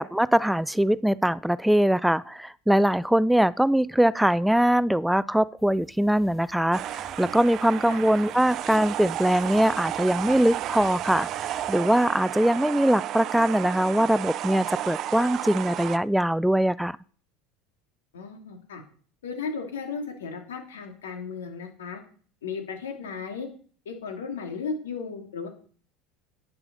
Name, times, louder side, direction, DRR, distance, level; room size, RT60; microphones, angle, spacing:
voice 1, 0.0-17.0, right 1 dB, 5° right, 20 dB, 0.4 m, -22 dB
sound 1, 5.6-11.7, left 3 dB, 20° left, 6.8 m, -54 dB
sound 2, 6.7-16.0, right 12 dB, 50° right, 0.6 m, -33 dB
voice 2, 18.1-18.8 19.2-22.0 22.4-23.5 23.8-25.5, left 5 dB, 80° left, 4 dB, 2.5 m, -35 dB
11.0 x 9.5 x 4.1 m, 0.43 s
hypercardioid pair, 80°, 0 cm